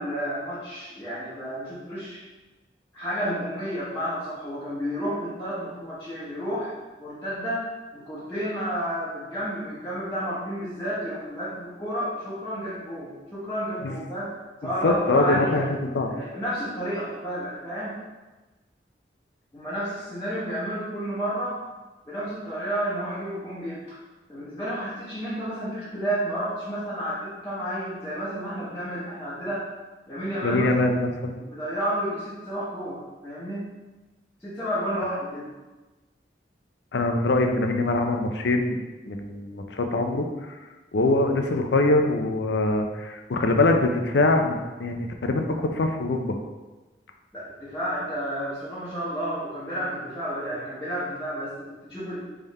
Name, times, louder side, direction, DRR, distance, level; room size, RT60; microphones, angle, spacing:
voice 1, 0.0-2.2 2.9-6.7 7.0-15.7 16.1-18.0 19.5-21.6 22.1-23.8 24.3-29.7 30.1-30.9 31.5-33.7 34.4-35.4 47.3-51.5 51.9-52.2, equal, 15° left, -12 dB, 1.0 m, -31 dB
voice 2, 14.8-16.1 30.4-31.4 36.9-38.8 39.1-40.5 40.9-46.4, left 2 dB, 75° left, 4 dB, 0.5 m, -23 dB
3.7 x 3.4 x 4.2 m, 1.2 s
head